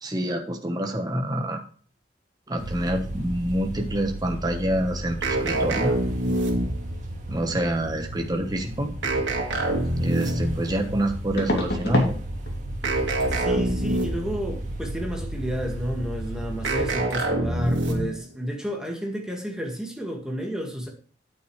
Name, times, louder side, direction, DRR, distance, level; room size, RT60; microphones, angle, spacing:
voice 1, 0.0-1.6 2.5-5.9 7.3-9.0 10.0-12.2, right 1 dB, 20° right, 1.2 m, -27 dB
sound 1, 2.6-17.0, right 1 dB, 40° right, 1.8 m, -34 dB
sound 2, 5.2-7.0 9.0-10.7 12.8-14.4 16.6-18.2, right 1 dB, 85° right, 2.1 m, -25 dB
sound 3, 9.8-9.9 11.4-12.2 12.4-12.8 13.1-13.3 16.2-16.3 16.6-16.8 17.1-17.2, left 1 dB, 60° left, 2.7 m, -27 dB
voice 2, 13.3-20.9, equal, 5° right, 1.8 m, -31 dB
9.2 x 9.1 x 3.2 m
head